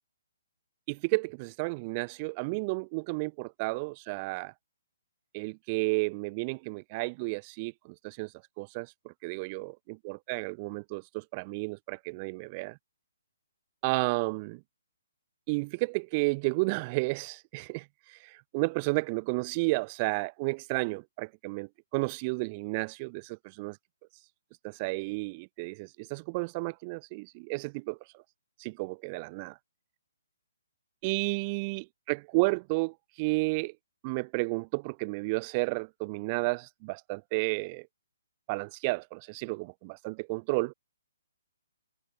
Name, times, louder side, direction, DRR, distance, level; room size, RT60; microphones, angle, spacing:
voice 1, 0.9-4.5 5.3-8.3 8.6-12.8 13.8-14.6 15.5-23.8 24.6-28.0 28.6-29.6 31.0-33.7 34.0-37.9 38.5-40.7, right 28 dB, 30° right, 1.7 m, -32 dB
figure-of-eight pair, 135°, 0 cm